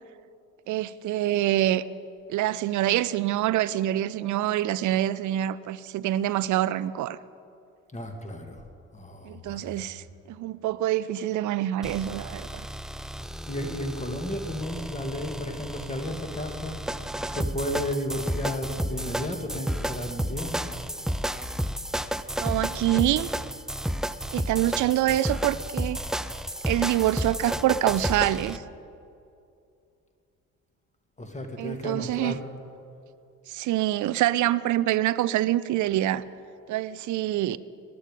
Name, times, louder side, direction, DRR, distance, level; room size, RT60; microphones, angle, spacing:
voice 1, 0.7-1.8 2.3-7.2 9.2-12.7 22.4-23.3 24.3-26.0 26.7-28.6 31.6-32.4 33.5-36.2 36.7-37.6, right 14 dB, 45° right, 0.6 m, -26 dB
voice 2, 7.9-8.6 8.9-9.8 13.5-16.8 17.2-20.7 31.2-32.4 35.8-35.9, left 1 dB, 15° left, 2.3 m, -33 dB
sound 1, 11.8-28.6, equal, ahead, 0.4 m, -32 dB
19.0 x 12.0 x 5.2 m
figure-of-eight pair, 45°, 41 cm